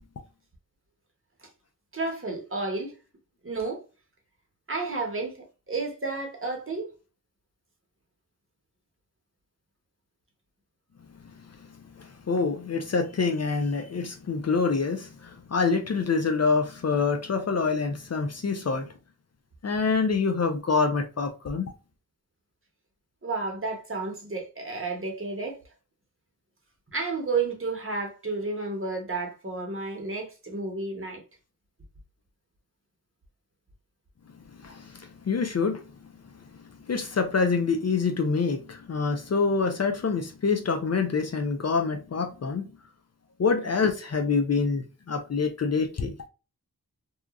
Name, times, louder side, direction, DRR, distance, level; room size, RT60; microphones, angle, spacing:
voice 1, 1.9-2.9 3.4-3.8 4.7-6.9 23.2-25.6 26.9-31.2, right 3 dB, 35° right, 0.9 m, -31 dB
voice 2, 12.0-18.9 19.6-21.7 34.6-35.8 36.9-42.7 43.4-46.2, left 4 dB, 45° left, 0.4 m, -26 dB
2.8 x 2.3 x 2.3 m
wide cardioid pair, 60°, 36 cm